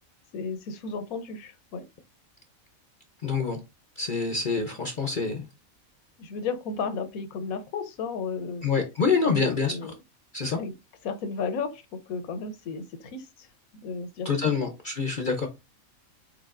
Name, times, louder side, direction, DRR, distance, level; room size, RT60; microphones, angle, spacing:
voice 1, 0.3-1.8 6.2-8.7 9.2-9.9 10.6-10.7 11.0-13.5 13.7-14.5, left 5 dB, 85° left, 1.2 m, -34 dB
voice 2, 3.2-3.6 4.0-5.5 8.6-9.8 10.3-10.6 14.2-15.5, left 5 dB, 50° left, 0.6 m, -26 dB
4.8 x 4.3 x 2.4 m
omnidirectional pair, 1.4 m